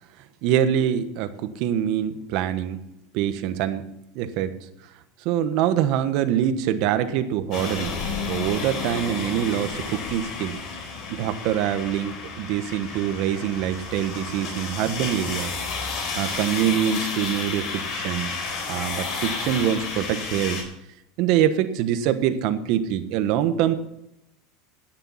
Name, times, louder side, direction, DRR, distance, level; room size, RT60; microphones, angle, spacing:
voice 1, 0.4-2.8 3.1-3.9 4.1-4.5 5.2-8.0 8.3-10.6 11.1-15.5 16.2-18.3 18.7-20.6 21.2-23.8, right 10 dB, 60° right, 11 dB, 1.1 m, -24 dB
sound 1, 7.5-20.6, left 4 dB, 50° left, 4.2 m, -31 dB
17.5 x 6.8 x 5.7 m, 0.82 s
supercardioid pair, 125°, 0 cm